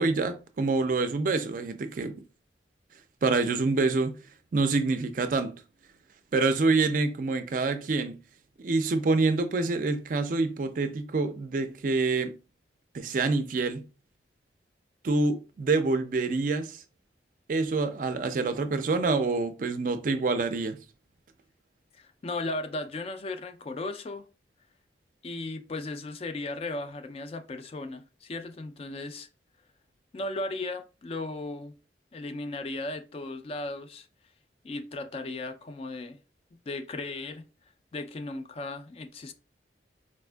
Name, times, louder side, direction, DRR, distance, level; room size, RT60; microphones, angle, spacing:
voice 1, 0.0-2.2 3.2-4.2 4.5-5.5 6.3-8.2 8.6-12.3 12.9-13.8 15.0-16.8 17.5-20.8, right 3 dB, 50° right, 0.4 m, -26 dB
voice 2, 21.9-24.3 25.2-29.3 30.1-31.7 32.1-34.1 34.6-36.2 36.7-37.4 37.9-39.3, left 2 dB, 35° left, 0.3 m, -36 dB
4.2 x 2.4 x 2.2 m
head